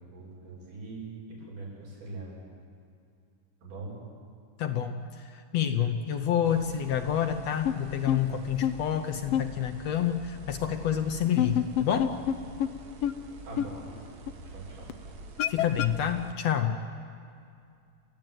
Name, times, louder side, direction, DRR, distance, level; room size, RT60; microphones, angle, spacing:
voice 1, 0.1-2.3 3.6-3.9 13.4-14.1 14.5-14.9, right 3 dB, 85° right, -5 dB, 9.6 m, -42 dB
voice 2, 4.6-12.1 15.5-16.8, left 9 dB, 70° left, 7 dB, 1.8 m, -28 dB
sound 1, 6.4-16.3, right 2 dB, 50° right, 1.2 m, -46 dB
sound 2, 7.7-7.8 8.1-8.2 8.6-8.7 9.3-9.4 11.2-12.4 12.6-12.7 13.0-13.1 13.6-13.7 14.3-14.4 14.9-15.0 15.4-15.9, left 10 dB, 90° left, 1.4 m, -25 dB
29.5 x 14.0 x 9.2 m, 2.4 s
omnidirectional pair, 3.6 m